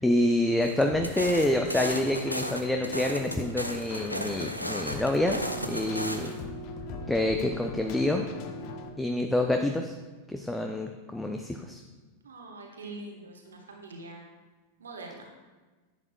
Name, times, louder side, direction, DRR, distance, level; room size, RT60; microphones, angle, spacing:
voice 1, 0.0-5.4 5.7-6.3 7.1-8.3 9.0-9.9 10.3-11.8, left 1 dB, 5° left, 4 dB, 0.5 m, -27 dB
sound 1, 0.6-6.4, equal, 90° left, 0.6 m, -35 dB
Keyboard (musical), 0.9-8.9, left 2 dB, 40° left, 0.7 m, -40 dB
voice 2, 12.2-14.2 14.8-15.3, right 2 dB, 70° right, 1 dB, 1.2 m, -43 dB
10.5 x 7.9 x 2.3 m, 1.3 s
figure-of-eight pair, 90°, 0 cm